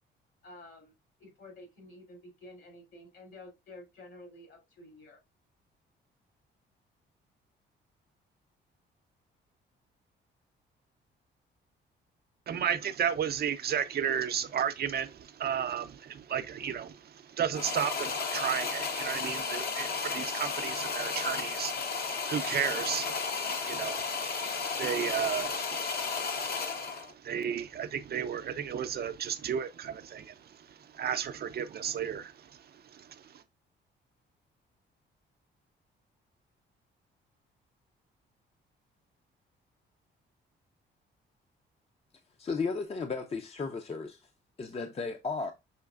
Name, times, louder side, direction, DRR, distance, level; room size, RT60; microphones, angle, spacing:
voice 1, 0.4-0.9 1.2-5.2, left 1 dB, 70° left, 2.9 m, -51 dB
voice 2, 12.5-33.4, right 8 dB, 50° right, 0.5 m, -34 dB
sound 1, 17.5-27.1, left 5 dB, 55° left, 0.9 m, -33 dB
voice 3, 42.4-44.2 44.6-45.5, left 4 dB, 30° left, 0.6 m, -34 dB
5.7 x 3.1 x 2.4 m
cardioid pair, 90°, 20 cm